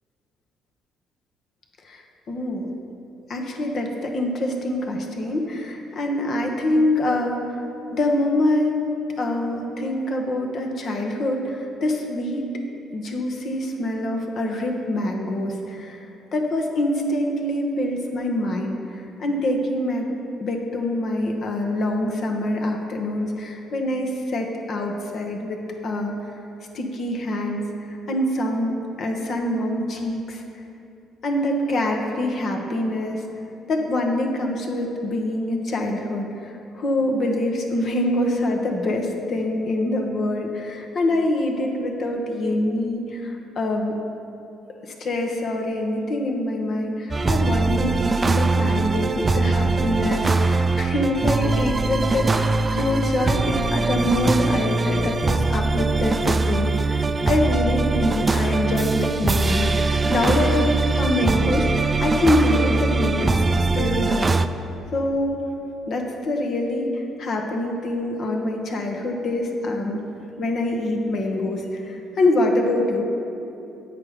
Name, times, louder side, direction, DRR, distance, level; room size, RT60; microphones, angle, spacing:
voice 1, 1.8-2.7 3.3-7.6 7.9-8.9 9.2-12.5 12.9-16.0 16.3-20.1 20.4-26.2 26.7-27.7 28.1-28.7 29.0-30.4 31.2-33.3 33.7-43.9 44.8-63.4 63.7-64.3 64.9-65.4 65.9-70.0 70.4-73.0, left 1 dB, 55° left, 2 dB, 1.0 m, -25 dB
sound 1, 47.1-64.5, right 3 dB, 30° right, 0.3 m, -22 dB
8.2 x 5.1 x 5.0 m, 2.8 s
supercardioid pair, 65°, 0 cm